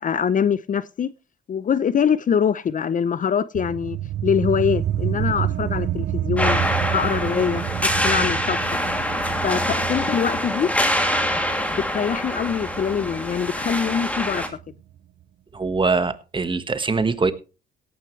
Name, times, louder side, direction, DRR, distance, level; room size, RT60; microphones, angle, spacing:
voice 1, 0.0-1.1 1.5-4.0 4.2-6.6 6.9-8.8 9.4-10.7 11.2-11.3 11.7-14.6, left 7 dB, 40° left, 0.7 m, -24 dB
sound 1, 3.5-14.6, right 11 dB, 60° right, 0.8 m, -29 dB
sound 2, 6.4-14.5, equal, 5° left, 2.8 m, -25 dB
voice 2, 15.5-17.3, right 4 dB, 25° right, 1.5 m, -22 dB
17.5 x 9.7 x 3.2 m
cardioid pair, 80°, 21 cm